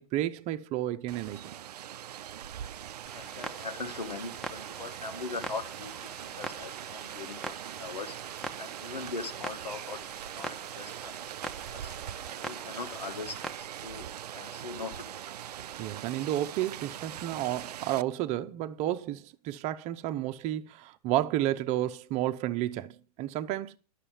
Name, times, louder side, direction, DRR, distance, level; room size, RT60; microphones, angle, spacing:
voice 1, 0.0-1.6 15.8-23.8, right 13 dB, 35° right, 0.7 m, -31 dB
Rain, 1.1-18.0, right 10 dB, 75° right, 0.4 m, -41 dB
voice 2, 3.1-8.1 8.6-10.0 10.3-11.9 12.3-15.2, left 4 dB, 85° left, 1.3 m, -41 dB
Clock, 3.1-13.6, equal, 5° left, 0.9 m, -44 dB
11.0 x 6.6 x 7.0 m
figure-of-eight pair, 105°, 21 cm